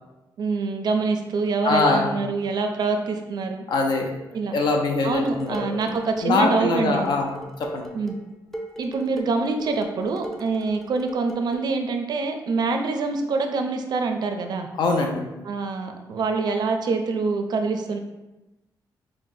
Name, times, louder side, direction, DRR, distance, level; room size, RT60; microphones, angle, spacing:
voice 1, 0.4-3.6 4.3-4.5 5.0-7.1 7.9-8.2 8.8-14.7 15.4-18.0, right 4 dB, 65° right, 5 dB, 0.4 m, -25 dB
voice 2, 1.6-2.1 3.7-4.1 4.5-5.7 6.2-7.9 14.8-15.2, left 3 dB, 70° left, 3 dB, 0.6 m, -23 dB
Dishes pots and pans, 5.1-11.7, right 1 dB, 5° left, 0.4 m, -39 dB
5.6 x 2.0 x 2.6 m, 1.0 s
cardioid pair, 100°, 8 cm